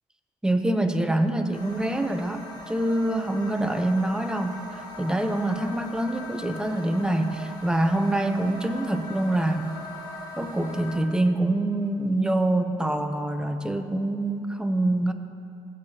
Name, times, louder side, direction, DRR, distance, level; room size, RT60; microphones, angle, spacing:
voice 1, 0.4-9.7 10.4-15.1, right 1 dB, 5° right, 7 dB, 0.6 m, -25 dB
sound 1, 1.5-11.0, left 1 dB, 30° left, 1.8 m, -40 dB
15.0 x 7.9 x 2.8 m, 2.8 s
cardioid pair, 100°, 13 cm